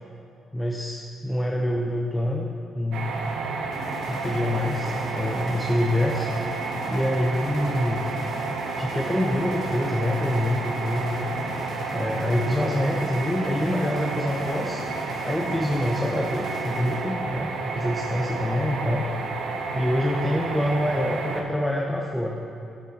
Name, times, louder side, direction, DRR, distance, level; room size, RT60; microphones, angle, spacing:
voice 1, 0.5-3.2 4.1-6.3 6.9-8.1 8.8-11.2 11.9-14.8 15.2-19.1 19.7-22.4, left 1 dB, 5° left, -1 dB, 0.8 m, -26 dB
sound 1, 2.9-21.4, right 3 dB, 80° right, 0.9 m, -31 dB
sound 2, 3.7-17.3, left 2 dB, 75° left, 2.3 m, -40 dB
12.0 x 8.8 x 2.9 m, 2.5 s
cardioid pair, 90°, 0 cm